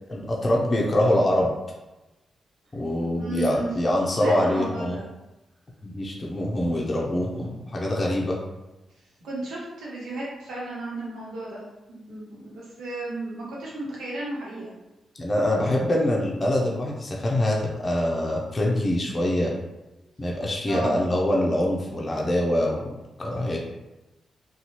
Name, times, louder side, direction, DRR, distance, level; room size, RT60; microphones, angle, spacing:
voice 1, 0.1-1.5 2.7-5.0 5.8-8.4 15.1-19.5 20.2-22.9 23.2-23.6, left 1 dB, 35° left, -2 dB, 0.6 m, -24 dB
voice 2, 3.2-3.7 4.2-5.1 9.2-11.6 11.9-14.7 20.7-21.0, right 2 dB, 80° right, -5 dB, 1.0 m, -34 dB
2.7 x 2.3 x 2.9 m, 1.0 s
supercardioid pair, 50°, 0 cm